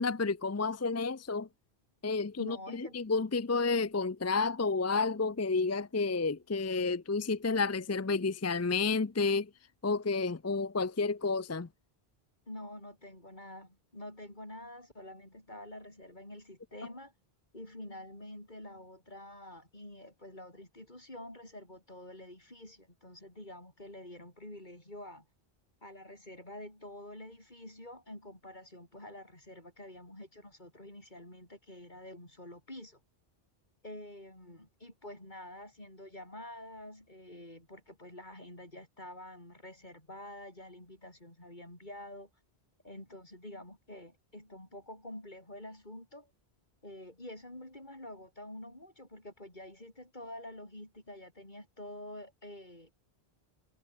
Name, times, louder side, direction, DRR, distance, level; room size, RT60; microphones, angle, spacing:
voice 1, 0.0-1.5 2.0-9.5 9.8-11.7, left 4 dB, 25° left, 0.4 m, -30 dB
voice 2, 2.4-3.0 12.5-17.1 17.5-25.3 25.8-33.0 33.8-42.3 42.8-46.3 46.8-52.9, left 1 dB, 45° left, 6.6 m, -48 dB
omnidirectional pair, 1.0 m